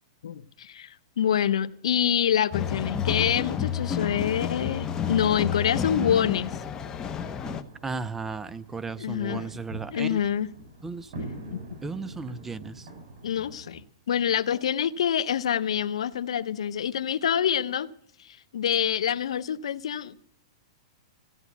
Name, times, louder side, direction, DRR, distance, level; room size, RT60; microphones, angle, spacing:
voice 1, 0.2-6.6 9.0-9.5 9.9-10.5 11.5-11.8 13.2-17.9 18.2-20.2, left 9 dB, 80° left, 0.8 m, -26 dB
sound 1, 2.5-7.6, left 7 dB, 20° left, 0.9 m, -30 dB
Wind instrument woodwind instrument, 2.8-6.4, right 8 dB, 70° right, 7.0 m, -58 dB
sound 2, 3.0-13.8, right 1 dB, 50° right, 7.2 m, -45 dB
voice 2, 7.8-10.2 10.8-11.1 11.8-12.9, right 4 dB, 10° right, 0.5 m, -35 dB
15.5 x 9.1 x 8.3 m
hypercardioid pair, 140°, 3 cm